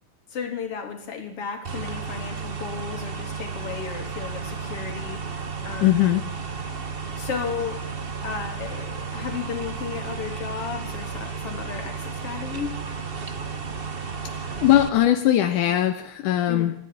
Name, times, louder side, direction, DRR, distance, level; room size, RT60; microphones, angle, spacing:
voice 1, 0.3-6.1 7.2-7.8 8.2-12.7 16.5-16.7, left 6 dB, 45° left, 5 dB, 3.8 m, -34 dB
sound 1, 1.6-14.9, right 5 dB, 60° right, 0.6 m, -33 dB
voice 2, 5.8-6.2 14.6-16.7, left 13 dB, 80° left, 7 dB, 2.6 m, -20 dB
26.0 x 11.0 x 9.9 m, 0.69 s
omnidirectional pair, 3.6 m